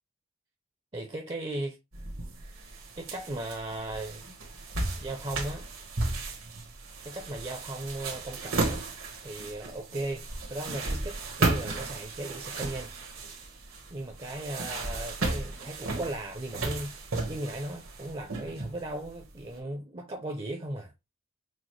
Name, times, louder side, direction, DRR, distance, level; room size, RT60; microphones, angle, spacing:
voice 1, 0.9-1.8 2.9-4.4 5.0-5.7 7.0-8.8 9.2-12.9 13.9-20.9, right 1 dB, 25° right, 0.5 m, -37 dB
sound 1, 1.9-19.4, right 2 dB, 80° right, 1.3 m, -34 dB
6.2 x 2.1 x 3.1 m
head